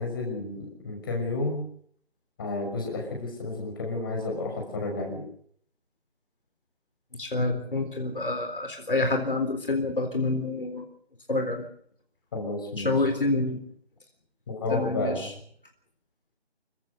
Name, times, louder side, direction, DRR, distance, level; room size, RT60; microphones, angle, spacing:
voice 1, 0.0-1.6 2.4-5.2 12.3-13.1 14.5-15.3, left 2 dB, 20° left, 1 dB, 6.0 m, -31 dB
voice 2, 7.2-10.9 11.3-11.6 12.8-13.6 14.7-15.3, left 2 dB, 55° left, 5 dB, 3.9 m, -27 dB
28.0 x 15.5 x 6.7 m, 0.63 s
figure-of-eight pair, 165°, 33 cm